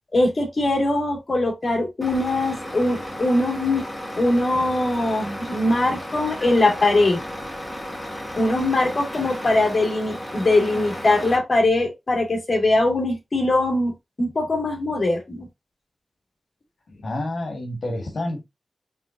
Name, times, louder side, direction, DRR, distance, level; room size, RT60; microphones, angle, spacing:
voice 1, 0.1-3.8 4.2-7.2 8.4-13.9 14.2-15.5, left 2 dB, 50° left, 2.1 m, -21 dB
Truck, 2.0-11.4, equal, 15° left, 1.7 m, -34 dB
voice 2, 17.0-18.4, left 1 dB, 70° left, 1.7 m, -28 dB
5.6 x 3.7 x 2.5 m
wide cardioid pair, 90°, 0 cm